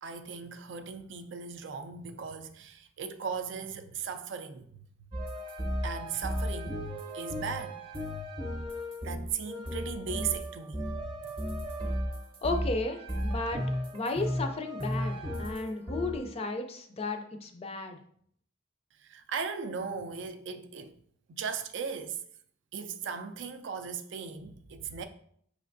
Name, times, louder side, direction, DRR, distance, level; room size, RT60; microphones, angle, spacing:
voice 1, 0.0-5.1 5.8-6.8 7.1-7.8 9.0-11.3 19.0-21.0 21.3-22.2 22.7-25.1, right 6 dB, 60° right, 0.4 m, -37 dB
sound 1, 5.1-16.3, equal, 25° right, 0.7 m, -35 dB
voice 2, 12.4-13.6 13.9-18.0, left 2 dB, 30° left, 0.4 m, -34 dB
5.3 x 3.3 x 2.6 m
head